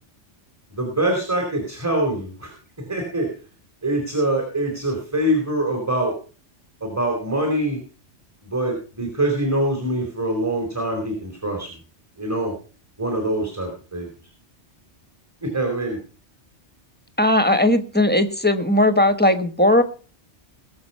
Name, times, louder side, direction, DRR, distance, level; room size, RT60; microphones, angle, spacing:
voice 1, 0.7-2.5 2.8-3.3 3.8-6.1 6.8-7.8 8.4-11.7 12.2-12.5 13.0-14.1 15.4-16.0, right 1 dB, 15° right, 2 dB, 3.9 m, -24 dB
voice 2, 17.2-19.8, left 1 dB, 10° left, 10 dB, 1.2 m, -18 dB
20.5 x 7.0 x 5.5 m, 0.37 s
omnidirectional pair, 1.2 m